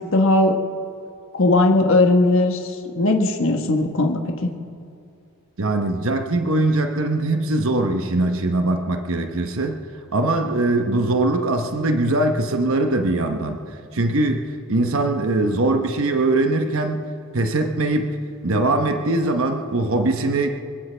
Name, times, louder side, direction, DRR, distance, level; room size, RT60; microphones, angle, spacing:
voice 1, 0.1-0.6 1.3-2.6 2.9-4.5, left 2 dB, 60° left, 3 dB, 1.3 m, -18 dB
voice 2, 5.6-9.8 10.1-13.6 13.9-14.4 14.7-17.1 17.3-20.5, right 2 dB, 65° right, 5 dB, 1.0 m, -21 dB
26.0 x 16.5 x 3.4 m, 2.4 s
head